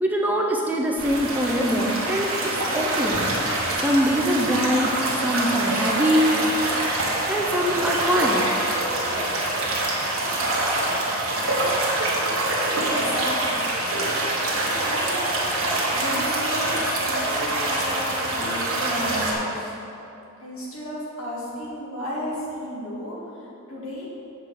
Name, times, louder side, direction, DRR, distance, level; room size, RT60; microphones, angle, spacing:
voice 1, 0.0-3.2 3.8-4.9 5.2-6.3 7.0-8.4, equal, 10° right, -1 dB, 0.5 m, -23 dB
sound 1, 1.0-19.3, right 1 dB, 70° right, 1.4 m, -25 dB
voice 2, 12.9-14.1 14.5-15.5 15.9-19.7 20.4-23.2 23.7-24.1, equal, 70° left, -5 dB, 1.9 m, -34 dB
6.8 x 4.6 x 6.8 m, 2.8 s
head